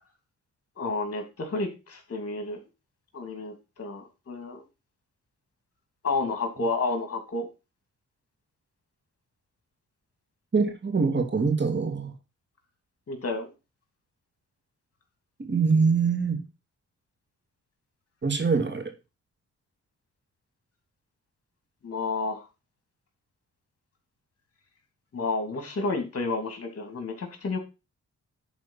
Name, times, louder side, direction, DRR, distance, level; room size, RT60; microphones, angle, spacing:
voice 1, 0.8-2.6 3.1-4.6 6.0-7.5 13.1-13.5 21.8-22.5 25.1-27.6, left 3 dB, 50° left, 5 dB, 2.9 m, -30 dB
voice 2, 10.5-12.1 15.4-16.4 18.2-18.9, right 5 dB, 40° right, 5 dB, 2.5 m, -24 dB
10.5 x 4.7 x 5.8 m, 0.28 s
cardioid pair, 75°, 30 cm